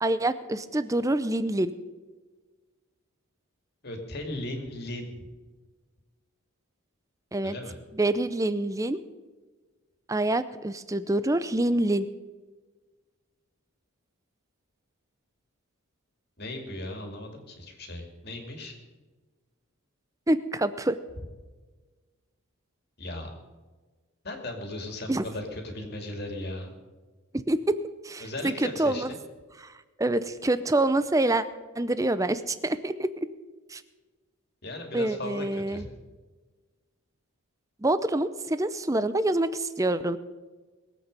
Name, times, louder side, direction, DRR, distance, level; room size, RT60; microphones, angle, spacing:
voice 1, 0.0-1.7 7.3-7.5 7.9-9.0 10.1-12.1 20.3-21.0 25.1-25.2 27.3-27.8 28.0-29.1 29.6-29.7 30.0-31.4 31.8-33.1 33.7-33.8 34.9-35.8 37.8-40.2, right 1 dB, 15° right, 13 dB, 0.5 m, -26 dB
voice 2, 3.8-5.3 7.4-7.8 16.4-18.7 23.0-23.3 24.2-26.7 28.2-29.2 34.6-35.9, left 1 dB, 45° left, 3 dB, 2.4 m, -37 dB
22.0 x 8.1 x 5.3 m, 1.3 s
head